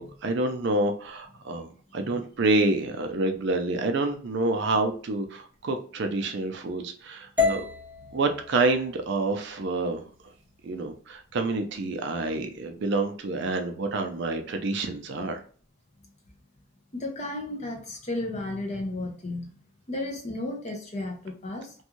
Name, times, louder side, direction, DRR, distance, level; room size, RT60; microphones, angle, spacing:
voice 1, 0.0-7.7 8.1-10.0 10.6-15.4, right 2 dB, 55° right, 0.4 m, -28 dB
sound 1, 7.4-11.5, left 5 dB, 10° right, 0.7 m, -33 dB
voice 2, 16.9-19.5 19.9-21.7, left 2 dB, 35° left, 0.6 m, -33 dB
2.5 x 2.3 x 2.9 m
head